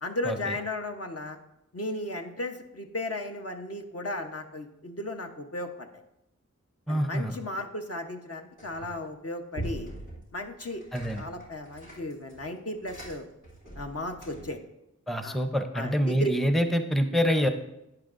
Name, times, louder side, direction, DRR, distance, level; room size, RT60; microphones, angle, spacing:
voice 1, 0.0-1.4 1.7-5.9 6.9-9.9 10.3-10.8 11.1-13.3 13.7-14.6 15.2-15.4 15.7-16.3, left 1 dB, 50° left, 4 dB, 0.9 m, -35 dB
voice 2, 6.9-7.4 10.9-11.2 15.1-17.5, equal, ahead, 7 dB, 0.6 m, -26 dB
sound 1, 8.6-9.1 9.5-14.6, right 1 dB, 85° left, 2.3 m, -42 dB
11.5 x 9.0 x 2.6 m, 0.87 s
wide cardioid pair, 60°, 30 cm